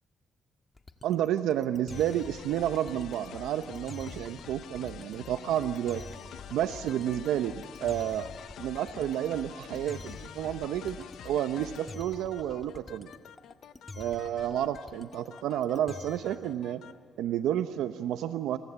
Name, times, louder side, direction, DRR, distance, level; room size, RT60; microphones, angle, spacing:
sound 1, 0.8-16.4, left 2 dB, 25° left, 1.7 m, -47 dB
voice 1, 1.0-6.0 6.5-8.3 8.6-13.1 14.0-16.8 17.2-18.6, right 11 dB, 85° right, 10 dB, 0.8 m, -30 dB
sound 2, 1.9-17.0, left 9 dB, 75° left, 0.9 m, -47 dB
28.0 x 23.5 x 8.2 m, 2.4 s
cardioid pair, 90°, 0 cm